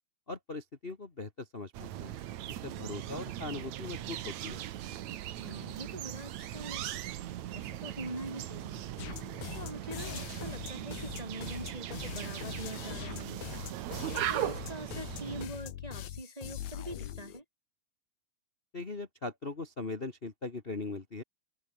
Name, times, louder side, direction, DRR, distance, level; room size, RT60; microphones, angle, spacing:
voice 1, 0.3-2.1 2.4-4.6 18.7-21.2, left 3 dB, 65° left, 0.5 m, -40 dB
sound 1, 1.7-15.5, right 12 dB, 65° right, 2.1 m, -39 dB
voice 2, 5.4-6.8 7.5-8.9 9.5-13.5 14.1-17.4, right 1 dB, 15° right, 1.3 m, -43 dB
sound 2, 9.0-17.4, left 12 dB, 85° left, 3.6 m, -42 dB
open air
omnidirectional pair, 4.2 m